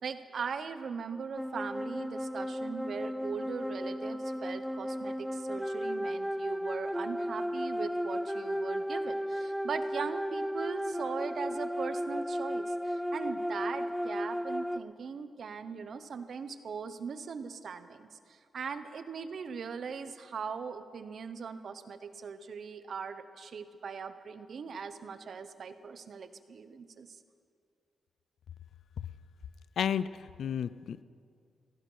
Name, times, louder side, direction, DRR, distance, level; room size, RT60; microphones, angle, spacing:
voice 1, 0.0-27.2, right 5 dB, 60° right, 11 dB, 0.9 m, -40 dB
sound 1, 1.4-14.8, equal, ahead, 0.3 m, -34 dB
voice 2, 29.8-31.0, left 8 dB, 80° left, 16 dB, 0.4 m, -32 dB
16.0 x 14.5 x 5.6 m, 2.3 s
cardioid pair, 115°, 0 cm